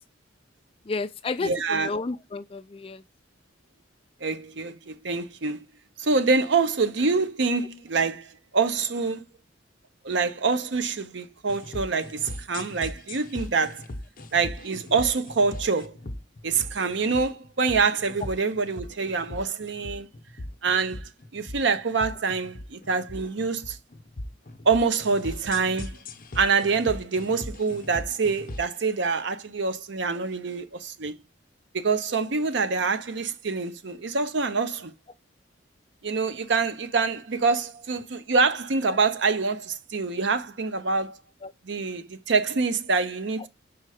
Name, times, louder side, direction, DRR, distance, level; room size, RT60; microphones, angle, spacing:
voice 1, 0.9-3.0 41.4-41.5, left 3 dB, 30° left, 0.3 m, -31 dB
voice 2, 1.4-1.9 4.2-5.6 6.0-9.3 10.0-13.9 14.3-16.0 16.4-20.1 20.6-23.8 24.6-26.0 26.4-31.1 31.7-34.9 36.0-41.2 41.6-43.5, right 4 dB, 60° right, 0.6 m, -26 dB
sound 1, 11.5-28.8, left 1 dB, 45° left, 0.7 m, -39 dB
5.5 x 4.3 x 4.9 m
head